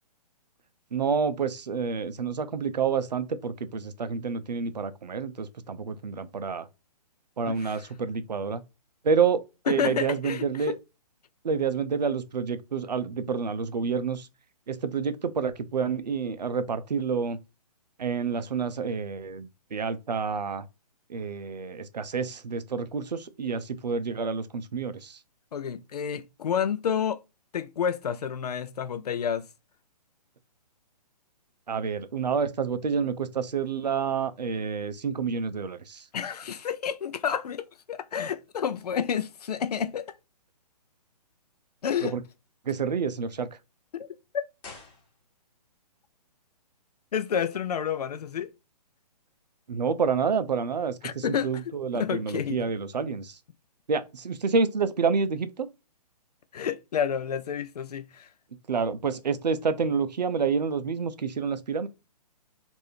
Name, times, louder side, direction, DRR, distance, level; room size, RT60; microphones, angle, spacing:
voice 1, 0.9-6.7 7.4-8.6 9.0-10.8 11.4-14.3 14.7-17.4 18.0-20.7 21.1-25.2 31.7-36.1 42.0-42.2 42.7-43.5 49.7-53.4 53.9-55.7 58.7-61.9, right 5 dB, 85° right, 0.5 m, -28 dB
voice 2, 7.5-7.8 9.7-10.8 25.5-27.2 27.5-29.5 36.1-40.1 41.8-42.1 47.1-48.5 51.0-51.5 51.9-52.6 56.5-58.3, left 8 dB, 70° left, 0.5 m, -30 dB
sound 1, 44.6-45.7 45.9-46.0, left 3 dB, 25° left, 1.3 m, -48 dB
3.3 x 2.6 x 2.6 m
figure-of-eight pair, 135°, 21 cm